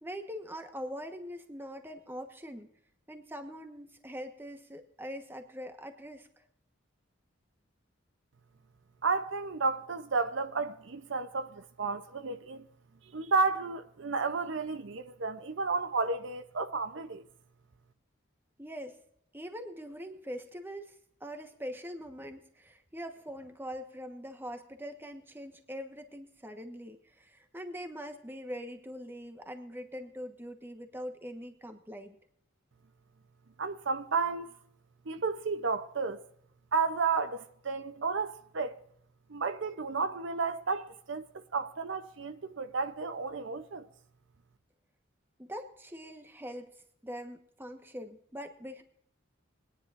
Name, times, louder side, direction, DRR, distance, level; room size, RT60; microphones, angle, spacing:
voice 1, 0.0-2.7 3.1-6.3 18.6-19.0 19.3-20.9 21.2-32.2 45.4-46.7 47.0-48.8, equal, 10° right, 1.2 m, -43 dB
voice 2, 9.0-12.7 13.1-17.2 33.6-34.5 35.1-36.2 36.7-38.8 39.3-43.9, right 4 dB, 65° right, 0.7 m, -32 dB
23.0 x 10.0 x 2.5 m
head